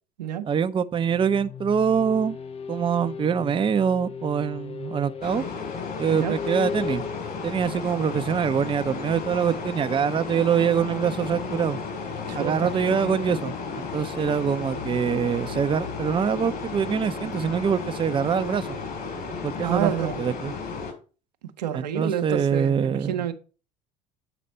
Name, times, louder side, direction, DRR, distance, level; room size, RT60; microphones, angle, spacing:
voice 1, 0.5-2.4 2.7-5.4 6.0-7.0 7.4-11.8 12.4-13.5 13.9-18.8 19.4-19.9 20.2-20.5 21.7-23.3, right 7 dB, 25° right, 0.6 m, -24 dB
sound 1, 0.9-15.6, left 6 dB, 30° left, 0.6 m, -39 dB
sound 2, 5.2-20.9, left 5 dB, 45° left, 3.6 m, -33 dB
voice 2, 12.3-12.7 19.6-20.2 21.6-23.3, right 9 dB, 80° right, 0.9 m, -28 dB
8.0 x 5.0 x 5.4 m
hypercardioid pair, 65°, 21 cm